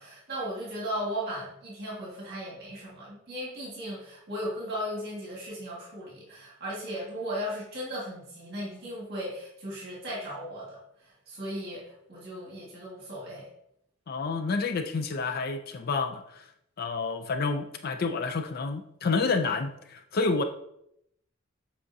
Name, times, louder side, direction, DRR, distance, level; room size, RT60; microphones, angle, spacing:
voice 1, 0.0-13.5, equal, 50° right, -5 dB, 1.8 m, -36 dB
voice 2, 14.1-16.5 16.8-20.4, left 4 dB, 45° left, 7 dB, 0.4 m, -29 dB
7.7 x 4.8 x 2.7 m, 0.76 s
head